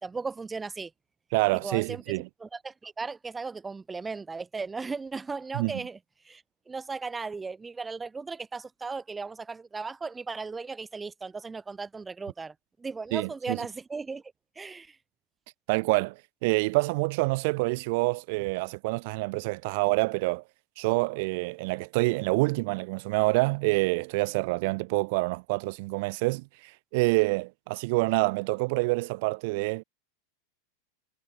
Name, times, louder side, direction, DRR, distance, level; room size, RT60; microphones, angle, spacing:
voice 1, 0.0-0.9 1.5-2.0 2.4-6.0 6.2-14.2 14.6-15.0, right 4 dB, 15° right, 1.9 m, -36 dB
voice 2, 1.3-2.3 5.5-5.7 13.1-13.6 15.7-20.4 20.8-29.8, right 26 dB, 55° right, 1.9 m, -27 dB
figure-of-eight pair, 90°, 0 cm